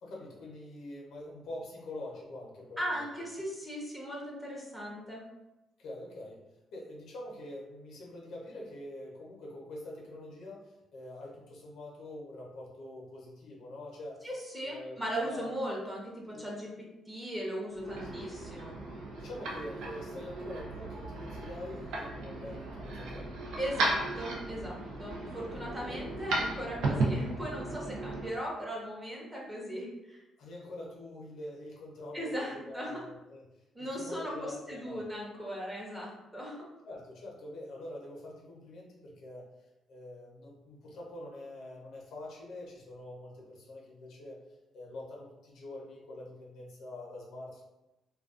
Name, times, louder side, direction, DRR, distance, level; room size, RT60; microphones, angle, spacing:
voice 1, 0.0-3.0 5.8-6.4 6.7-14.3 14.6-15.5 16.3-16.5 17.8-18.4 19.2-23.3 25.6-26.1 30.4-33.4 33.8-35.2 36.8-39.5 39.9-44.4 44.7-47.6, left 1 dB, 75° left, -2 dB, 0.7 m, -45 dB
voice 2, 2.8-5.2 14.2-18.8 23.6-30.2 32.1-33.0 33.7-36.6, equal, 10° right, -4 dB, 0.8 m, -38 dB
sound 1, 17.7-28.3, right 2 dB, 85° right, 0.4 m, -36 dB
2.3 x 2.2 x 2.4 m, 0.96 s
cardioid pair, 90°, 0 cm